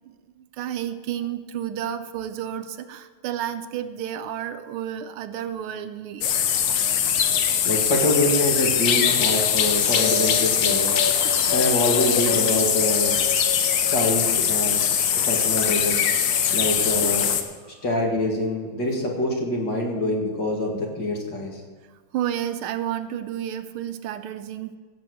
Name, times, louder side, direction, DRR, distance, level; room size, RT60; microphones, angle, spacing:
voice 1, 0.0-6.3 22.1-24.8, right 10 dB, 80° right, 10 dB, 1.6 m, -31 dB
sound 1, 6.2-17.4, left 8 dB, 85° left, 1.8 m, -21 dB
voice 2, 7.6-11.0 11.5-13.2 13.9-14.8 15.3-16.0 16.5-17.3 17.7-21.6, left 1 dB, 55° left, -1 dB, 2.7 m, -25 dB
16.0 x 6.9 x 6.4 m, 1.4 s
omnidirectional pair, 2.3 m